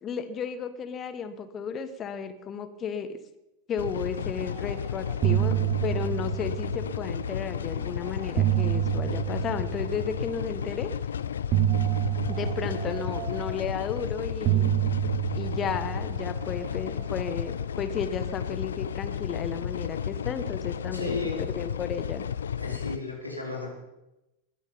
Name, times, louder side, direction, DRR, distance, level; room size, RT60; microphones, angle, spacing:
voice 1, 0.0-3.2 3.7-10.9 12.3-14.7 15.3-22.3, left 6 dB, 25° left, 11 dB, 1.3 m, -34 dB
sound 1, 3.8-23.0, left 8 dB, 65° left, 0.5 m, -33 dB
sound 2, 4.6-4.8 5.1-7.4 8.1-10.5 11.5-14.0 14.4-17.0, right 16 dB, 35° right, 0.7 m, -28 dB
voice 2, 20.9-21.4 22.6-23.8, left 3 dB, 85° left, 0 dB, 3.5 m, -34 dB
21.5 x 11.0 x 5.5 m, 0.95 s
figure-of-eight pair, 90°, 0 cm